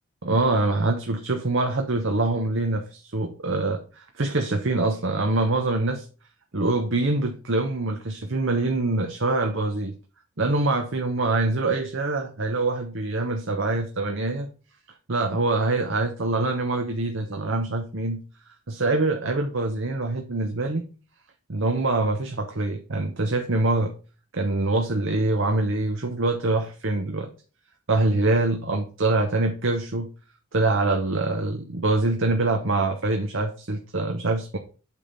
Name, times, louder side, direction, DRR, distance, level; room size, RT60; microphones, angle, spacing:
voice 1, 0.2-6.0 6.5-9.9 10.4-14.5 15.1-20.9 21.5-23.9 24.3-27.3 27.9-30.1 30.5-34.6, right 2 dB, 55° right, 4 dB, 0.9 m, -24 dB
8.4 x 3.6 x 5.7 m, 0.35 s
head